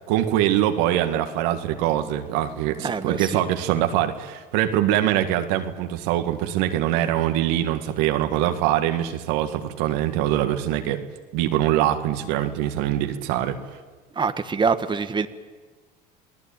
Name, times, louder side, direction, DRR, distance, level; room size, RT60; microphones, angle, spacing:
voice 1, 0.1-11.0 11.3-13.6, right 12 dB, 80° right, 7 dB, 2.0 m, -23 dB
voice 2, 2.8-3.4 14.2-15.3, right 5 dB, 20° right, 9 dB, 1.3 m, -25 dB
27.5 x 18.5 x 8.9 m, 1.3 s
supercardioid pair, 90°, 21 cm